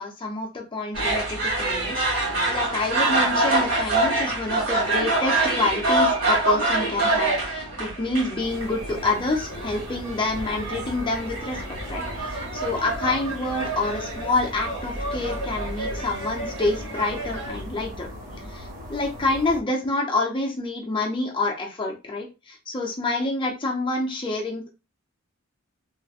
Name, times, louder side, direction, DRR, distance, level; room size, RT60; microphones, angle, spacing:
voice 1, 0.0-11.6 11.9-18.1 18.4-24.7, left 2 dB, 25° left, 1 dB, 0.5 m, -27 dB
sound 1, 0.9-17.6, right 2 dB, 75° right, 1.8 m, -26 dB
sound 2, 8.4-19.6, equal, 40° right, 1.2 m, -39 dB
3.2 x 2.9 x 2.3 m, 0.29 s
head